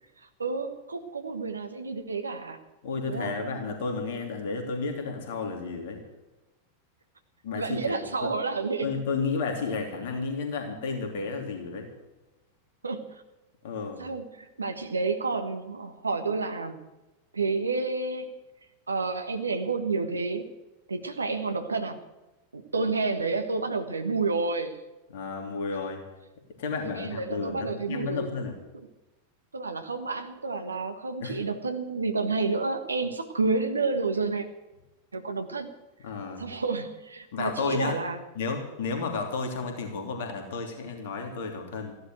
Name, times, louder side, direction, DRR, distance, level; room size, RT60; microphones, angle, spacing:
voice 1, 0.4-2.6 3.1-3.4 7.5-9.0 12.8-13.2 14.0-16.8 17.3-18.3 18.9-20.5 20.9-22.0 22.5-24.8 26.8-28.3 29.5-34.5 35.1-35.7 36.4-38.2, right 3 dB, 75° right, 8 dB, 1.4 m, -30 dB
voice 2, 2.8-6.0 7.4-8.3 8.8-11.9 13.6-14.0 25.1-26.0 26.6-28.6 31.2-31.4 36.0-36.4 37.3-38.0 38.3-42.0, left 4 dB, 55° left, 4 dB, 3.1 m, -32 dB
15.0 x 11.5 x 8.0 m, 1.1 s
figure-of-eight pair, 90°, 0 cm